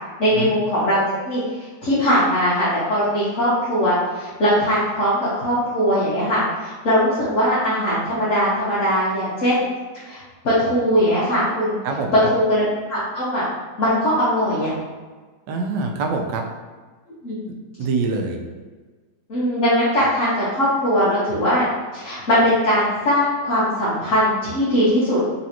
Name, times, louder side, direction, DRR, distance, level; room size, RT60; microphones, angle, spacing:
voice 1, 0.2-1.4 1.8-9.6 10.0-11.8 12.3-13.4 13.8-14.7 17.2-17.4 19.3-21.7 21.9-25.2, equal, 50° left, -10 dB, 1.2 m, -20 dB
voice 2, 15.5-16.4 17.8-18.4, right 3 dB, 80° right, 2 dB, 1.2 m, -24 dB
4.1 x 3.1 x 2.8 m, 1.3 s
omnidirectional pair, 1.9 m